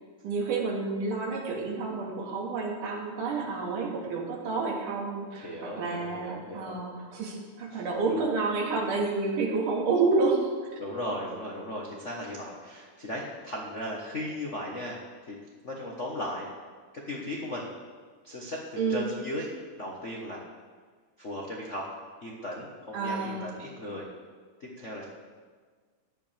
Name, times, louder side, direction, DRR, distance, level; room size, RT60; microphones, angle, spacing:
voice 1, 0.2-10.5 18.8-19.1 22.9-23.5, right 4 dB, 80° right, -2 dB, 3.5 m, -29 dB
voice 2, 5.4-6.8 7.7-8.2 10.8-15.3 15.6-16.5 16.9-17.7 18.2-19.5 19.8-20.4 21.2-21.9 22.2-24.1 24.6-25.1, left 1 dB, 55° left, -2 dB, 0.8 m, -37 dB
16.5 x 11.5 x 3.5 m, 1.5 s
omnidirectional pair, 3.6 m